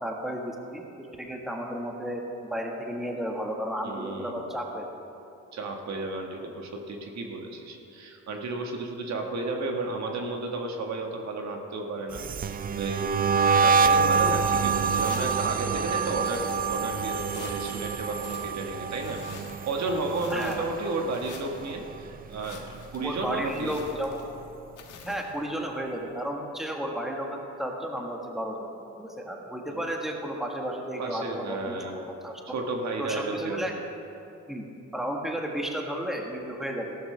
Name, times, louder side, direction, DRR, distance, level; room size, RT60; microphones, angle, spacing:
voice 1, 0.0-2.2 2.5-4.9 20.3-20.7 23.0-24.2 25.0-28.7 29.0-32.4 33.0-33.7 34.5-34.7 34.9-37.0, equal, ahead, 1 dB, 1.5 m, -33 dB
voice 2, 3.8-4.5 5.5-13.1 13.6-23.7 29.7-29.8 31.0-32.0 32.5-33.6, right 3 dB, 65° right, 2 dB, 1.5 m, -33 dB
sound 1, 12.1-21.3 21.6-22.0 22.3-23.9, right 5 dB, 30° right, 0.4 m, -27 dB
sound 2, 14.8-15.5 16.0-16.9 17.2-17.8 18.1-19.7 20.0-20.8 21.1-21.8 22.3-23.1 23.4-24.4 24.8-25.4, left 6 dB, 80° left, 1.4 m, -48 dB
15.0 x 12.5 x 3.3 m, 2.8 s
cardioid pair, 90°, 30 cm